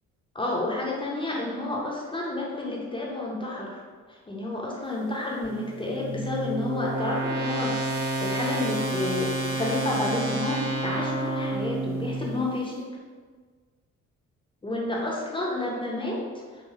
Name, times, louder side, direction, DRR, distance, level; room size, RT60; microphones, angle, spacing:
voice 1, 0.3-3.8 4.3-12.9 14.6-16.2, left 2 dB, 15° left, -3 dB, 0.5 m, -30 dB
sound 1, 5.4-12.6, right 2 dB, 50° right, 0.6 m, -30 dB
2.6 x 2.3 x 2.8 m, 1.5 s
figure-of-eight pair, 45°, 41 cm